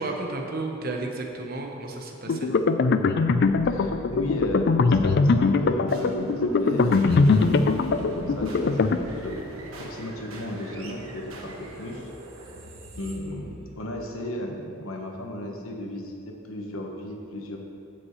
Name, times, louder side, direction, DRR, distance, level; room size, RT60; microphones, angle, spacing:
voice 1, 0.0-2.5, right 2 dB, 45° right, 2 dB, 0.9 m, -32 dB
sound 1, 2.3-9.0, left 4 dB, 55° left, 0.4 m, -21 dB
voice 2, 3.6-9.4 9.8-12.1 13.0-17.6, left 1 dB, 80° left, 1 dB, 1.2 m, -35 dB
sound 2, 3.7-14.2, right 1 dB, 80° right, 1.2 m, -39 dB
15.0 x 6.2 x 3.1 m, 2.6 s
head